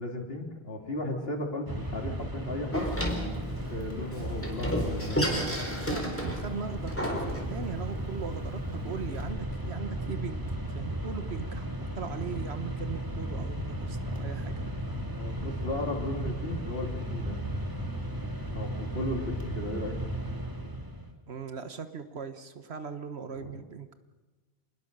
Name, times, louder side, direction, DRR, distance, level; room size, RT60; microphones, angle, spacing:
voice 1, 0.0-2.9 3.7-5.3 15.2-17.4 18.5-20.0 23.3-23.6, left 1 dB, 65° left, 3 dB, 3.1 m, -35 dB
Mechanisms, 1.7-21.1, right 1 dB, 20° right, 2.3 m, -35 dB
Door, 2.7-9.3, equal, 10° left, 3.8 m, -33 dB
voice 2, 5.8-10.4 10.7-11.7 11.9-14.5 21.3-23.9, right 6 dB, 80° right, 10 dB, 1.4 m, -39 dB
27.0 x 20.5 x 6.7 m, 1.2 s
omnidirectional pair, 1.1 m